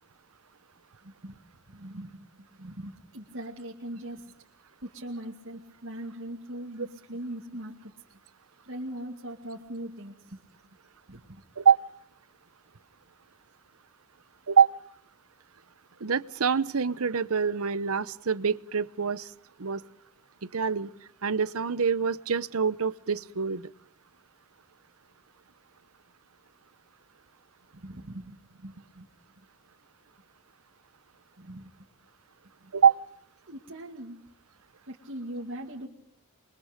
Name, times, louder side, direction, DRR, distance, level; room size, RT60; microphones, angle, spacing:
voice 1, 1.0-1.4 1.7-4.3 4.8-7.9 8.6-10.4 11.1-11.4 27.7-29.1 31.4-31.7 32.6-32.7 33.5-34.2 34.9-35.9, right 1 dB, 60° right, 0 dB, 2.2 m, -40 dB
voice 2, 16.0-19.3 19.6-19.8 20.5-20.9 21.2-23.7 32.7-33.0, right 6 dB, 75° right, 17 dB, 0.9 m, -25 dB
28.5 x 23.0 x 5.1 m, 0.63 s
head